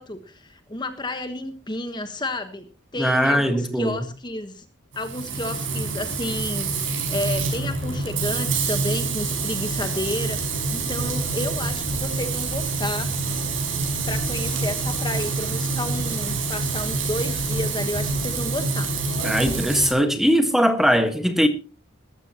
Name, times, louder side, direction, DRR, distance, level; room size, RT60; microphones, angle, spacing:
voice 1, 0.0-2.7 2.9-4.6 5.0-10.4 10.7-13.1 13.8-18.9, left 1 dB, 20° left, 1.2 m, -31 dB
voice 2, 3.0-4.0 19.2-21.5, equal, ahead, 1.5 m, -20 dB
Frying (food), 4.9-19.9, right 3 dB, 75° right, 5.6 m, -26 dB
19.5 x 13.5 x 2.9 m
head